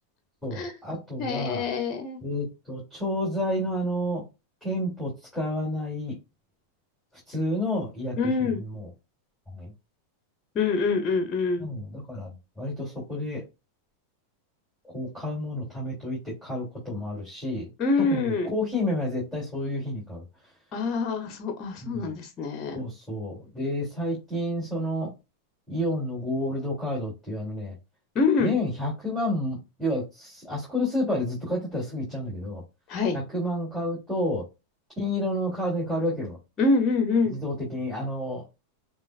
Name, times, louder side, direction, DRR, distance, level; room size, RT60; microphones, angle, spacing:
voice 1, 0.4-1.6 2.2-4.2 4.6-6.2 7.3-8.2 8.6-8.9 9.5-9.7 11.6-13.4 14.8-17.7 18.0-20.2 21.8-22.1 22.7-25.1 25.7-27.7 28.4-32.6 33.1-34.5 35.0-36.4 37.2-38.4, left 1 dB, ahead, 3.1 m, -30 dB
voice 2, 1.2-2.2 8.2-8.6 10.5-11.7 17.8-18.5 20.7-22.8 28.1-28.6 32.9-33.2 36.6-37.4, left 4 dB, 30° left, 1.1 m, -25 dB
7.3 x 2.5 x 2.5 m
figure-of-eight pair, 90°, 0 cm